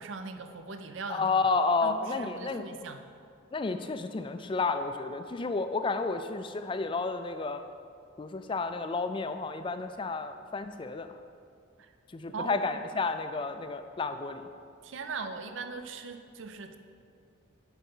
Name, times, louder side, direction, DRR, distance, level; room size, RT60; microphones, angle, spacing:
voice 1, 0.0-1.3 1.8-3.0 12.3-12.8 14.8-16.8, right 4 dB, 65° right, 8 dB, 0.5 m, -40 dB
voice 2, 1.1-2.7 3.5-7.6 8.2-11.1 12.1-14.4, left 4 dB, 25° left, 9 dB, 0.3 m, -31 dB
7.2 x 5.6 x 5.4 m, 2.3 s
head